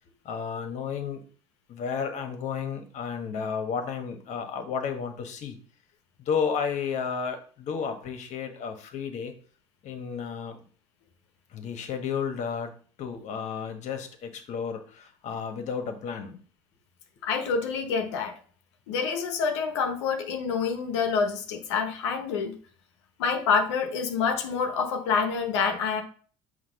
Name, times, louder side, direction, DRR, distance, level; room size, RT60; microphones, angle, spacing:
voice 1, 0.2-1.2 1.7-5.6 6.2-9.3 9.8-10.6 11.5-12.7 13.0-16.4, left 6 dB, 55° left, 6 dB, 1.3 m, -32 dB
voice 2, 17.2-18.3 18.9-22.5 23.2-26.0, left 5 dB, 90° left, 5 dB, 1.0 m, -27 dB
5.9 x 3.0 x 5.7 m, 0.42 s
supercardioid pair, 90°, 14 cm